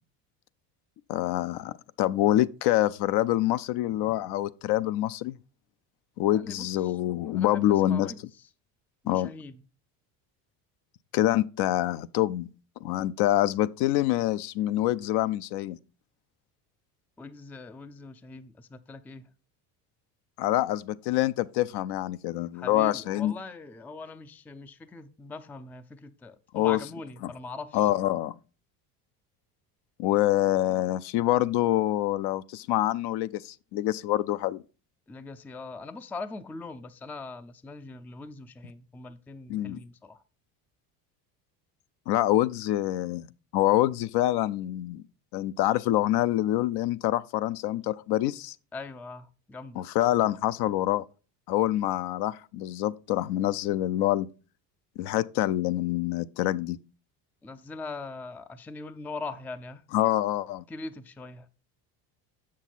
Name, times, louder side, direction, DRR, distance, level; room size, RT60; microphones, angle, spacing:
voice 1, 1.1-5.4 6.2-8.1 9.1-9.3 11.1-12.5 12.8-15.8 20.4-23.3 26.5-26.8 27.7-28.4 30.0-34.6 39.5-39.8 42.1-43.3 43.5-45.0 45.3-48.5 49.8-51.0 51.5-54.3 55.0-56.8 59.9-60.6, left 14 dB, 55° left, 0.5 m, -26 dB
voice 2, 6.3-7.0 7.3-8.5 9.0-9.6 17.2-19.3 22.5-27.9 35.1-40.2 48.7-49.9 57.4-59.8 60.7-61.5, left 3 dB, 5° left, 0.3 m, -41 dB
7.1 x 6.4 x 4.0 m
hypercardioid pair, 80°, 48 cm